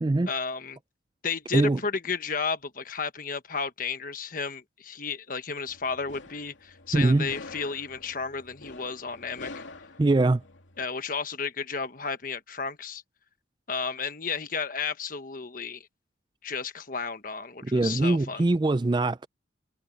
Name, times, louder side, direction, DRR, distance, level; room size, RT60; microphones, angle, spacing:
voice 1, 0.3-0.8 1.2-9.6 10.8-13.0 13.7-15.8 16.4-18.4, left 5 dB, 45° left, 1.3 m, -33 dB
sound 1, 5.7-10.8, left 3 dB, 80° left, 2.8 m, -46 dB
voice 2, 6.9-7.3 10.0-10.4 17.6-19.3, right 2 dB, 25° right, 0.3 m, -22 dB
head